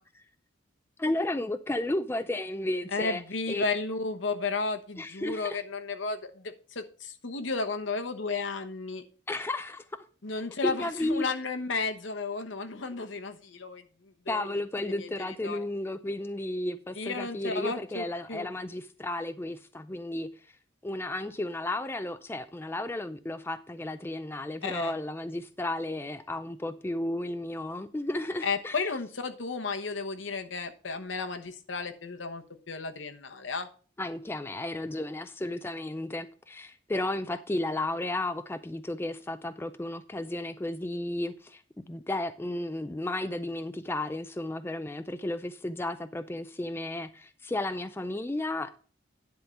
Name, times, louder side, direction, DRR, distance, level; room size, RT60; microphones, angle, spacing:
voice 1, 1.0-3.2 3.5-3.6 5.0-5.6 9.3-10.0 10.6-11.3 14.3-20.3 20.8-28.8 34.0-41.6 41.9-48.7, left 1 dB, 10° left, 0.4 m, -33 dB
voice 2, 2.9-9.0 10.2-13.8 14.3-15.6 16.9-18.5 24.6-24.9 28.4-33.7, left 4 dB, 70° left, 1.1 m, -33 dB
10.5 x 3.8 x 6.8 m
head